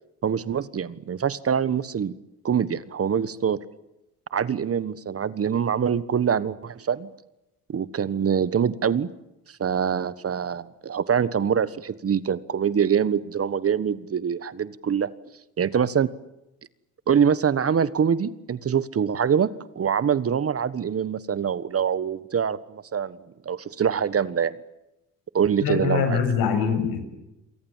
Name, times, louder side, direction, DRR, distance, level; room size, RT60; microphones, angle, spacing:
voice 1, 0.2-2.1 2.4-3.6 4.3-7.1 7.7-9.1 9.5-15.1 15.6-16.1 17.1-23.2 23.4-24.6 25.3-26.2, right 7 dB, 40° right, 17 dB, 1.4 m, -24 dB
voice 2, 25.6-27.0, left 6 dB, 75° left, 8 dB, 7.4 m, -23 dB
29.0 x 23.0 x 7.4 m, 0.92 s
supercardioid pair, 75°, 36 cm